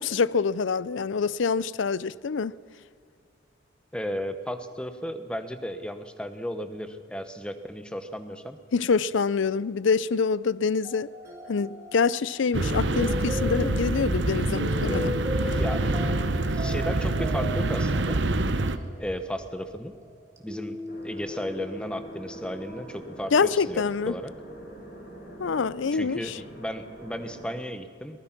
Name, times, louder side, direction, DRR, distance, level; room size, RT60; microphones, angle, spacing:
voice 1, 0.0-2.5 8.7-11.1 11.5-15.1 15.5-15.6 23.3-24.1 25.4-26.4, left 5 dB, 75° left, 0.5 m, -26 dB
voice 2, 3.9-8.6 15.4-15.9 16.5-18.2 19.0-19.9 20.4-20.8 21.0-24.3 25.9-28.2, equal, 5° left, 1.1 m, -34 dB
sound 1, 10.8-22.9, left 1 dB, 15° right, 2.2 m, -38 dB
sound 2, 12.5-18.8, right 2 dB, 70° right, 1.0 m, -26 dB
sound 3, 20.9-27.5, right 1 dB, 55° left, 6.1 m, -45 dB
23.0 x 19.5 x 5.9 m
head